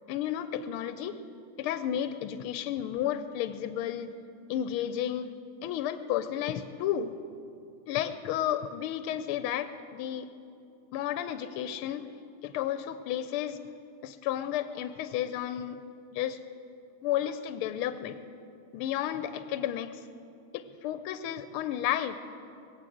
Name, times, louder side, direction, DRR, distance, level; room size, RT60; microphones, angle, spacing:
voice 1, 0.1-1.2 1.6-4.1 4.5-5.3 5.6-7.1 7.9-10.3 10.9-12.1 12.4-13.6 14.0-15.8 16.1-16.4 17.0-18.2 18.7-20.0 20.5-22.2, left 11 dB, 85° left, 11 dB, 1.5 m, -32 dB
22.0 x 7.9 x 7.7 m, 2.6 s
omnidirectional pair, 2.4 m